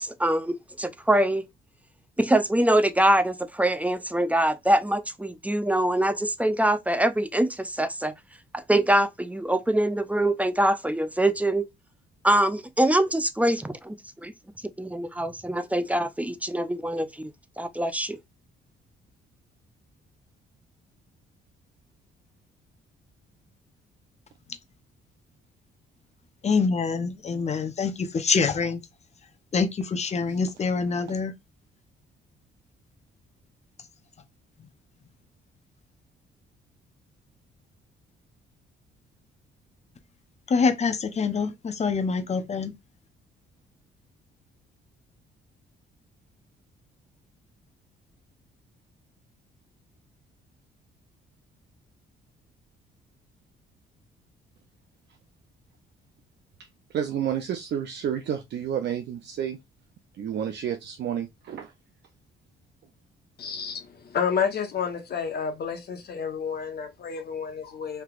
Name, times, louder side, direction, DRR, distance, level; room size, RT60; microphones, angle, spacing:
voice 1, 0.0-1.4 2.2-8.1 8.5-11.7 12.2-14.3 14.8-17.3 17.6-18.2, right 1 dB, 5° right, 0.4 m, -24 dB
voice 2, 26.4-28.8 29.5-31.3 40.5-42.7, left 5 dB, 35° left, 0.7 m, -25 dB
voice 3, 56.6-59.6 60.1-61.7, right 9 dB, 60° right, 0.5 m, -30 dB
voice 4, 63.4-68.0, left 6 dB, 55° left, 1.0 m, -30 dB
3.3 x 2.8 x 2.4 m
cardioid pair, 90°, 20 cm